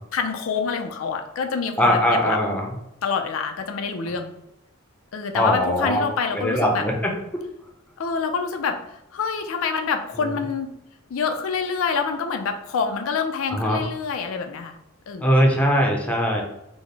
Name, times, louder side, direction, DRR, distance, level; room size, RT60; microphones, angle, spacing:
voice 1, 0.1-2.4 3.0-4.3 5.1-6.8 8.0-8.8 9.1-10.7 11.1-14.8 15.1-15.3, left 5 dB, 90° left, 6 dB, 0.4 m, -26 dB
voice 2, 1.8-2.7 5.3-6.0 6.4-7.1 13.5-13.8 15.2-16.4, equal, 5° left, 0 dB, 0.5 m, -20 dB
4.0 x 2.0 x 3.3 m, 0.84 s
head